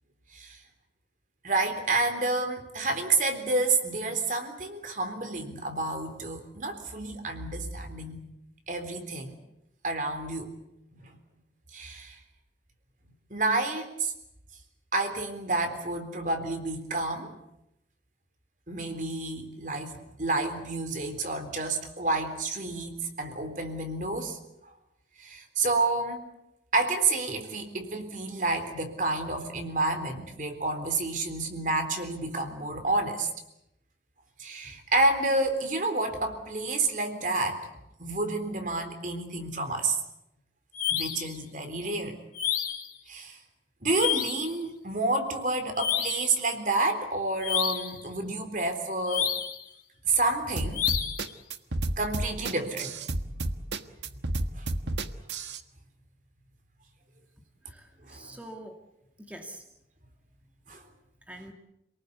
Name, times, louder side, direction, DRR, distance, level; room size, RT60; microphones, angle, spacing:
voice 1, 1.4-8.3 8.7-9.3 9.8-10.5 10.9-11.2 11.7-12.2 13.3-14.1 14.9-17.3 18.7-24.4 25.2-26.3 26.7-33.3 34.4-37.6 38.0-40.0 40.9-42.2 43.1-43.4 43.8-49.3 50.0-50.9 52.0-53.5 54.5-54.7 58.1-58.4 60.7-60.8, right 2 dB, 45° right, 6 dB, 3.7 m, -29 dB
sound 1, 40.7-41.3 42.3-42.9 43.9-44.5 45.8-46.3 47.4-48.0 49.1-49.6 50.7-51.3, left 10 dB, 50° left, 3.1 m, -29 dB
sound 2, 50.6-55.6, right 2 dB, 80° right, 1.5 m, -31 dB
voice 2, 57.7-58.8 59.2-59.6 61.3-61.5, right 1 dB, 10° right, 3 dB, 2.1 m, -44 dB
28.0 x 19.0 x 8.3 m, 0.85 s
head